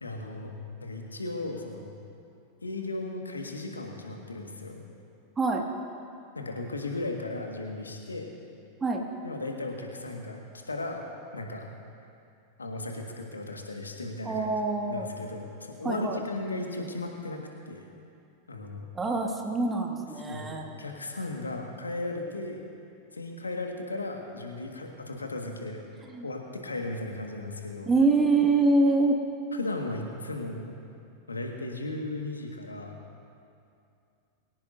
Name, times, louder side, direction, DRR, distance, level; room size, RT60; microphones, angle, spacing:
voice 1, 0.0-0.5 0.8-1.9 2.6-4.8 6.4-8.3 9.2-11.1 11.3-11.7 12.6-14.5 14.8-17.8 18.5-18.9 20.2-22.6 23.1-25.8 26.2-27.9 29.5-30.6 31.3-33.0, left 2 dB, 80° left, 2 dB, 1.8 m, -36 dB
voice 2, 14.2-15.1 15.8-16.2 19.0-20.7 26.1-26.3 27.9-29.2, right 3 dB, 15° right, 1 dB, 2.0 m, -25 dB
23.0 x 17.5 x 2.7 m, 2.5 s
figure-of-eight pair, 90°, 0 cm